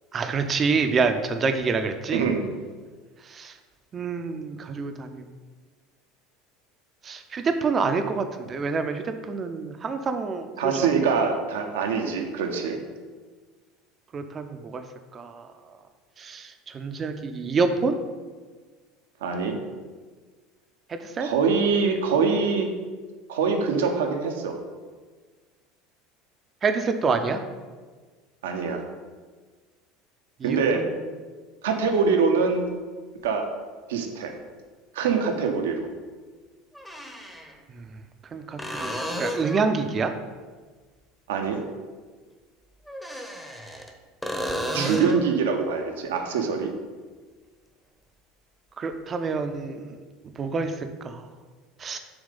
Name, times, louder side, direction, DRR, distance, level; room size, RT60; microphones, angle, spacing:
voice 1, 0.1-2.3 3.3-3.5 3.9-5.2 7.0-10.9 14.1-14.8 15.1-15.5 16.2-18.0 20.9-21.3 26.6-27.4 30.4-31.0 37.7-37.8 38.3-40.1 44.7-45.1 48.8-50.0 50.4-51.2 51.8-52.0, right 4 dB, 30° right, 7 dB, 0.6 m, -27 dB
voice 2, 2.1-2.4 10.6-12.8 19.2-19.6 21.2-22.7 23.3-24.6 28.4-28.8 30.4-30.8 31.6-32.7 33.2-33.5 33.9-34.3 34.9-35.9 41.3-41.6 44.7-46.7, right 5 dB, 70° right, 4 dB, 0.8 m, -24 dB
sound 1, 33.2-33.3 35.4-35.5 36.7-37.5 38.6-39.7 42.9-43.9 44.2-45.3 48.9-49.0, equal, 5° left, 0.9 m, -32 dB
7.0 x 3.2 x 5.3 m, 1.4 s
figure-of-eight pair, 70°, 0 cm